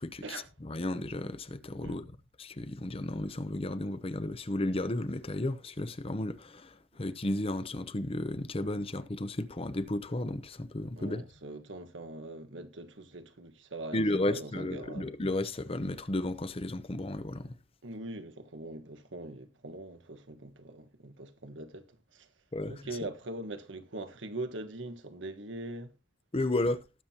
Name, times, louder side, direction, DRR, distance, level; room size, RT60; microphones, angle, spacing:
voice 1, 0.7-2.1 2.4-11.2 13.9-17.5 22.5-22.7 26.3-26.9, left 1 dB, 30° left, 0.8 m, -33 dB
voice 2, 11.0-15.1 17.8-22.3 22.6-25.9, right 2 dB, 85° right, 1.4 m, -42 dB
19.0 x 7.4 x 2.8 m
head